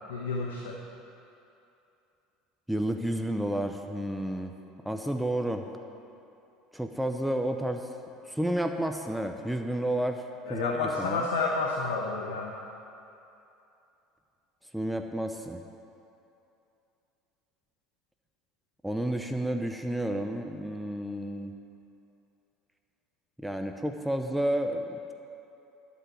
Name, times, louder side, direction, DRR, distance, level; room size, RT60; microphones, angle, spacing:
voice 1, 0.1-0.7 10.5-12.5, left 3 dB, 75° left, 0 dB, 1.1 m, -30 dB
voice 2, 2.7-4.5 4.8-5.7 6.7-7.8 8.3-11.3 14.7-15.6 18.8-21.5 23.4-25.1, right 1 dB, 5° right, 4 dB, 0.8 m, -31 dB
12.0 x 6.2 x 8.0 m, 2.8 s
hypercardioid pair, 70°, 0 cm